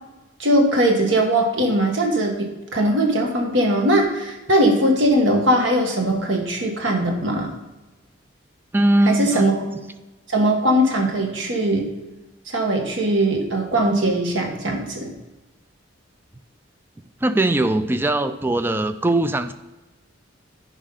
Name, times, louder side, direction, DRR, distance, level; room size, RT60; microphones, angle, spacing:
voice 1, 0.4-7.5 9.0-9.6 10.3-11.9 12.5-15.1, right 1 dB, 65° right, 2 dB, 1.5 m, -20 dB
voice 2, 8.7-9.5 17.2-19.5, right 1 dB, 10° right, 11 dB, 0.3 m, -20 dB
10.0 x 5.2 x 4.0 m, 1.1 s
head